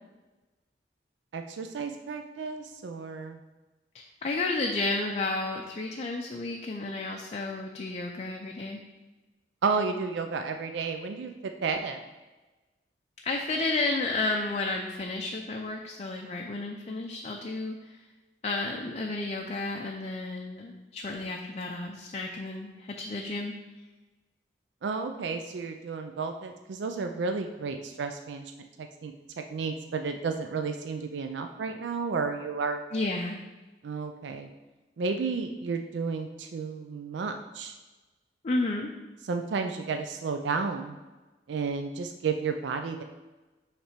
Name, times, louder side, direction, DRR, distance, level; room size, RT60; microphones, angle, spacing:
voice 1, 1.3-3.4 9.6-12.0 24.8-28.5 29.0-32.8 33.8-34.5 35.0-37.7 39.2-41.0 41.5-43.0, right 4 dB, 70° right, 6 dB, 0.4 m, -32 dB
voice 2, 4.2-8.8 13.2-18.0 18.4-23.5 32.9-33.4 38.4-38.9, left 2 dB, 35° left, 1 dB, 0.5 m, -32 dB
5.7 x 3.3 x 5.7 m, 1.2 s
head